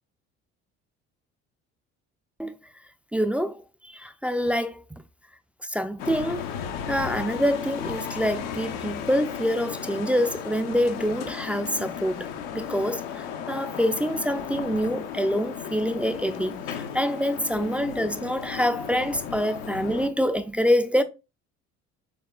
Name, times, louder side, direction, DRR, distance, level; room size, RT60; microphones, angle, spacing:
voice 1, 3.1-4.8 5.7-6.5 6.9-21.0, equal, 5° right, 0.3 m, -26 dB
sound 1, 6.0-20.1, left 8 dB, 85° left, 0.6 m, -35 dB
6.7 x 2.3 x 2.3 m
supercardioid pair, 80°, 31 cm